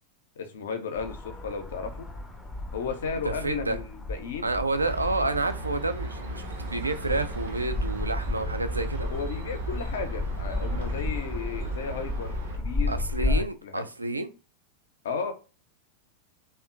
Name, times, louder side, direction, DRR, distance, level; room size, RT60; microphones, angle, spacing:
voice 1, 0.4-2.1 2.7-4.5 9.1-13.9 15.0-15.3, left 6 dB, 60° left, 0.5 m, -34 dB
sound 1, 0.9-13.4, left 2 dB, 10° left, 0.5 m, -34 dB
voice 2, 3.2-3.8 4.4-9.1 12.9-14.3, right 2 dB, 80° right, 0.3 m, -29 dB
sound 2, 4.8-12.6, right 2 dB, 65° right, 0.7 m, -36 dB
2.8 x 2.1 x 2.4 m
figure-of-eight pair, 90°, 0 cm